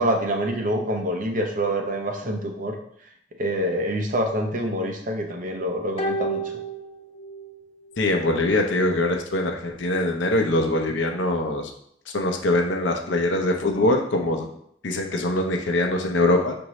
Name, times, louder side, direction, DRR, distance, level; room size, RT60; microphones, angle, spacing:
voice 1, 0.0-2.8 3.4-6.4, right 1 dB, 45° right, 2 dB, 0.6 m, -26 dB
sound 1, 6.0-7.6 7.9-8.0, right 2 dB, 30° left, 0.4 m, -30 dB
voice 2, 8.0-11.7 12.1-14.5 14.8-16.6, left 2 dB, 75° left, 3 dB, 0.6 m, -23 dB
5.9 x 2.6 x 3.1 m, 0.70 s
head